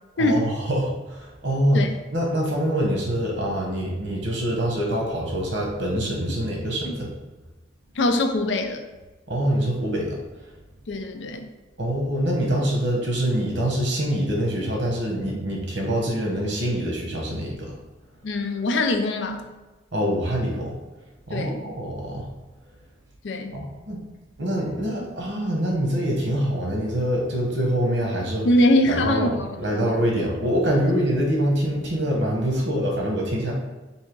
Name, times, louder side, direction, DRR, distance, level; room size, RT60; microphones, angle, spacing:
voice 1, 0.2-1.8 2.1-7.1 9.3-10.2 11.8-17.7 19.9-20.7 21.3-22.3 23.5-24.0 24.4-28.5 28.9-33.5, equal, 75° right, -1 dB, 1.1 m, -25 dB
voice 2, 8.0-8.8 10.9-11.5 18.2-19.4 21.3-21.6 23.2-23.5 28.4-30.0, left 1 dB, 75° left, 5 dB, 0.5 m, -23 dB
3.4 x 2.7 x 4.5 m, 1.1 s
head